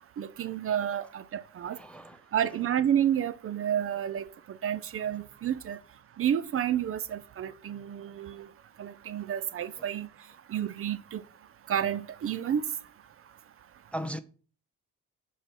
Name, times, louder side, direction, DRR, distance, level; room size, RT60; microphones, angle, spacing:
voice 1, 0.2-1.8 2.3-5.8 6.2-8.5 8.8-10.1 10.5-11.2 11.7-12.6, right 9 dB, 45° right, 0.5 m, -30 dB
voice 2, 1.7-2.2 13.9-14.2, equal, 5° left, 0.4 m, -37 dB
5.5 x 4.2 x 6.2 m
cardioid pair, 90°, 30 cm